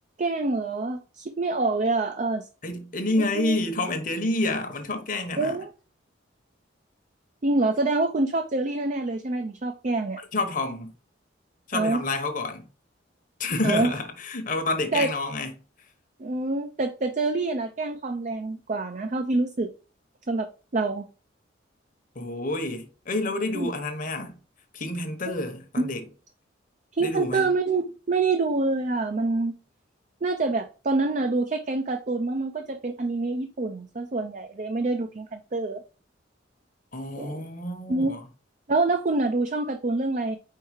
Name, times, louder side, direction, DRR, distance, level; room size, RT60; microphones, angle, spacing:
voice 1, 0.2-2.5 3.2-3.6 5.4-5.7 7.4-10.2 11.7-12.0 13.6-13.9 14.9-15.1 16.2-19.7 20.3-21.1 23.5-23.7 26.9-29.6 30.2-35.8 37.2-37.4 37.9-38.2 38.7-40.4, right 3 dB, 40° right, 0.5 m, -26 dB
voice 2, 2.6-5.5 10.3-10.9 11.7-12.7 13.4-15.5 22.1-24.4 24.7-26.1 27.0-27.5 36.9-38.2, left 2 dB, 45° left, 1.0 m, -29 dB
4.7 x 4.6 x 4.8 m
head